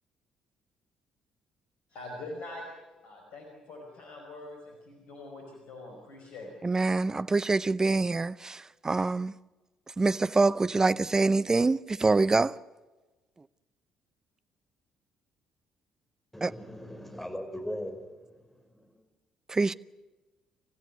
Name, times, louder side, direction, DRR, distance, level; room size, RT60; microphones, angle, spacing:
voice 1, 1.9-2.7 3.0-6.6, left 2 dB, 65° left, 5.1 m, -44 dB
voice 2, 6.6-9.3 10.0-12.5 16.4-16.5 19.5-19.7, right 3 dB, 25° right, 0.7 m, -25 dB
voice 3, 16.3-19.0, equal, 10° left, 5.2 m, -40 dB
27.5 x 15.0 x 9.5 m
figure-of-eight pair, 45°, 2 cm